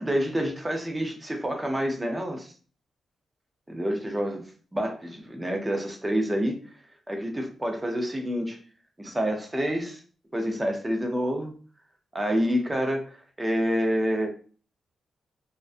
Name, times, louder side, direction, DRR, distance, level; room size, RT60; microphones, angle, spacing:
voice 1, 0.0-2.5 3.7-4.4 4.7-6.6 7.1-8.6 9.0-10.0 10.3-11.5 12.1-14.3, equal, 15° right, 3 dB, 0.5 m, -28 dB
2.4 x 2.1 x 2.4 m, 0.39 s
cardioid pair, 110°, 0 cm